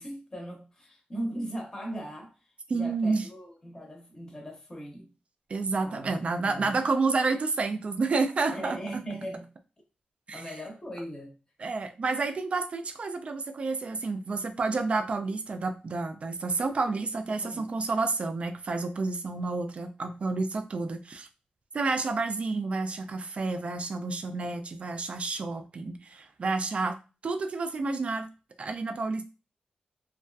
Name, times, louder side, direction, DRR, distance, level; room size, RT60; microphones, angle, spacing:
voice 1, 0.0-2.4 2.7-5.1 5.8-6.7 8.5-9.5 10.3-11.3 17.4-17.7, right 1 dB, 20° left, 0.7 m, -39 dB
voice 2, 2.7-3.3 5.5-8.8 10.3-10.4 11.6-21.3 21.7-27.0 27.2-28.3 28.6-29.2, right 3 dB, 45° right, 0.3 m, -30 dB
2.5 x 2.3 x 2.2 m
wide cardioid pair, 150°, 3 cm